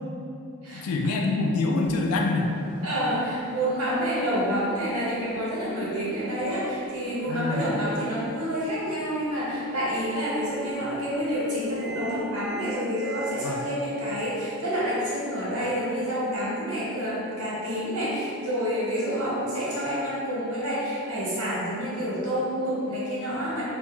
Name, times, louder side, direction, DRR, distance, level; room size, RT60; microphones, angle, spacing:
voice 1, 0.7-2.5 7.3-7.7 13.4-13.6, left 3 dB, 85° left, 1 dB, 0.3 m, -25 dB
Microwave oven, 1.8-13.3, right 2 dB, 5° left, 0.6 m, -46 dB
voice 2, 2.8-23.6, equal, 90° right, -7 dB, 0.8 m, -28 dB
2.2 x 2.1 x 2.9 m, 2.5 s
head